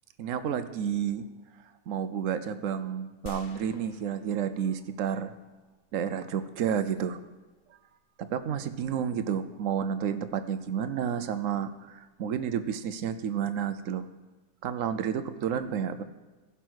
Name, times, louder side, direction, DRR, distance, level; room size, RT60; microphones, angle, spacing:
voice 1, 0.2-1.3 1.9-5.3 5.9-7.2 8.2-14.0 14.6-16.0, right 8 dB, 65° right, 12 dB, 1.0 m, -30 dB
sound 1, 3.3-5.0 5.5-5.6, left 4 dB, 70° left, 0.4 m, -49 dB
15.5 x 5.7 x 6.2 m, 1.2 s
omnidirectional pair, 1.5 m